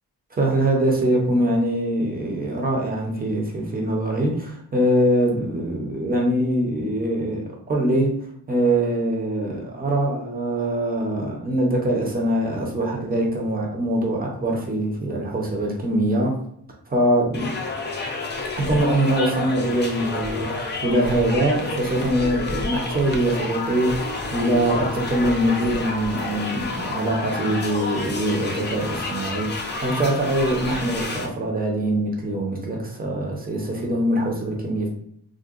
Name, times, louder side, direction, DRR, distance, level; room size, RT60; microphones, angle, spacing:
voice 1, 0.3-16.4 16.9-17.5 18.6-34.9, right 1 dB, 20° right, 0 dB, 0.6 m, -23 dB
sound 1, 17.3-31.3, left 3 dB, 25° left, 0.4 m, -30 dB
3.6 x 2.2 x 2.4 m, 0.70 s
wide cardioid pair, 150°, 42 cm